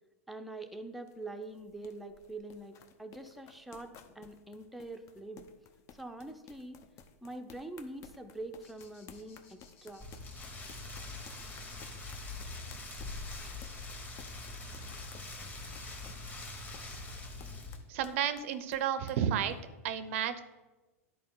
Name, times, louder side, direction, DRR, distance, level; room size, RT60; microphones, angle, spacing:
voice 1, 0.3-5.5 5.9-6.8 7.2-10.0, right 2 dB, ahead, 5 dB, 0.6 m, -44 dB
sound 1, 0.6-19.6, left 6 dB, 40° left, 0.7 m, -56 dB
sound 2, 8.6-14.5, left 5 dB, 65° left, 1.4 m, -61 dB
Rain, 10.0-17.8, left 2 dB, 20° left, 1.5 m, -43 dB
voice 2, 17.9-19.6 19.8-20.4, right 9 dB, 60° right, 12 dB, 0.5 m, -31 dB
10.0 x 4.4 x 3.9 m, 1.2 s
hypercardioid pair, 105°, 8 cm